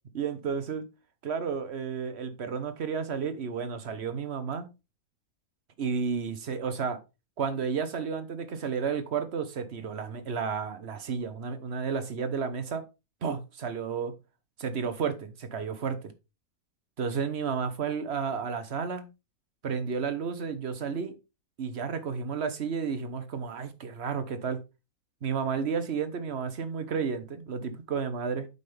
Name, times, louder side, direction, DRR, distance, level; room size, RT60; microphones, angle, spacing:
voice 1, 0.1-0.8 1.2-4.7 5.8-7.0 7.4-12.8 13.2-14.1 14.6-16.0 17.0-19.0 19.6-21.1 21.6-24.6 25.2-28.5, right 6 dB, 50° right, 1.2 m, -32 dB
8.2 x 5.5 x 3.3 m
omnidirectional pair, 1.5 m